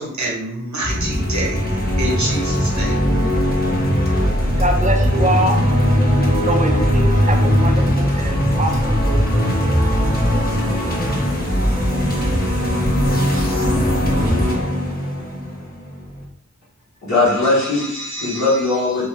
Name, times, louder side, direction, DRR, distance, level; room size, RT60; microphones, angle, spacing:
voice 1, 0.0-3.0, right 1 dB, 70° right, 1.0 m, -26 dB
sound 1, 0.8-16.2, equal, 30° left, 0.9 m, -19 dB
voice 2, 4.6-5.6 6.4-9.4 10.9-11.0 12.4-12.5, right 1 dB, 25° right, 0.5 m, -24 dB
voice 3, 17.0-19.1, left 2 dB, 65° left, 1.1 m, -19 dB
2.7 x 2.6 x 3.1 m
wide cardioid pair, 40°, 30 cm